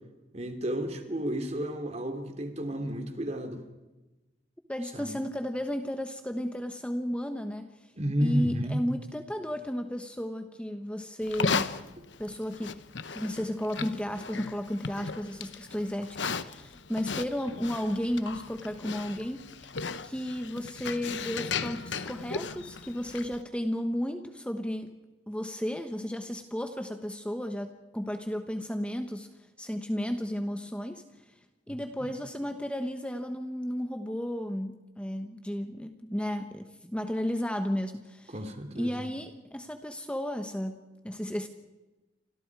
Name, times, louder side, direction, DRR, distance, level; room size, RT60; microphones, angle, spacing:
voice 1, 0.3-3.6 4.9-5.2 8.0-8.8 31.7-32.1 38.3-39.1, equal, 35° right, 6 dB, 2.9 m, -32 dB
voice 2, 4.7-7.7 8.2-11.8 12.2-12.8 13.1-19.4 20.0-24.9 25.3-29.3 29.6-31.0 31.7-38.3 38.8-41.5, equal, 5° left, 6 dB, 1.2 m, -33 dB
Livestock farm animals working animals, 11.2-23.4, left 5 dB, 90° left, 1.0 m, -36 dB
29.5 x 25.5 x 4.8 m, 1.1 s
head